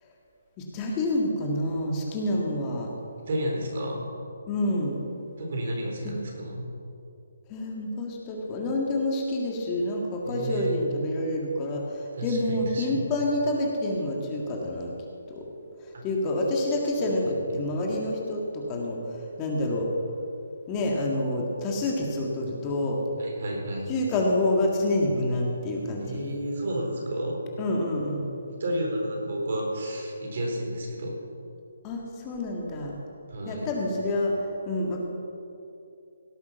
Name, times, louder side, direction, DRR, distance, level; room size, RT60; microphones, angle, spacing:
voice 1, 0.6-2.9 4.5-5.0 6.0-6.2 7.5-14.9 15.3-15.4 15.8-19.9 20.7-23.0 23.9-26.2 27.6-28.2 31.8-33.0 33.5-35.0, left 1 dB, 20° left, -1 dB, 2.0 m, -28 dB
voice 2, 3.3-4.1 5.4-6.7 10.2-10.8 12.2-13.0 15.9-16.1 23.2-23.9 26.0-27.5 28.5-31.1 33.3-33.7, right 1 dB, 55° right, -1 dB, 4.0 m, -31 dB
17.0 x 8.4 x 5.9 m, 2.7 s
hypercardioid pair, 155°, 0 cm